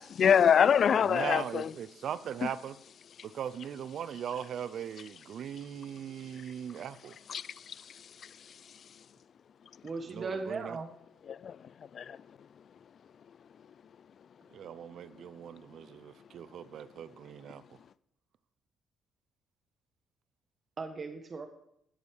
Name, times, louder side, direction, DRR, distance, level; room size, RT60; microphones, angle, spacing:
voice 1, 0.2-1.7 2.4-2.5 7.3-7.8 8.2-8.3 11.3-11.6 11.9-12.2, left 8 dB, 55° left, 0.3 m, -25 dB
voice 2, 1.0-2.8 3.2-7.2 10.1-10.8 14.5-17.6, right 9 dB, 65° right, 0.6 m, -39 dB
voice 3, 9.8-10.9 20.8-21.4, right 4 dB, 40° right, 1.6 m, -37 dB
11.0 x 8.4 x 5.0 m
cardioid pair, 90°, 0 cm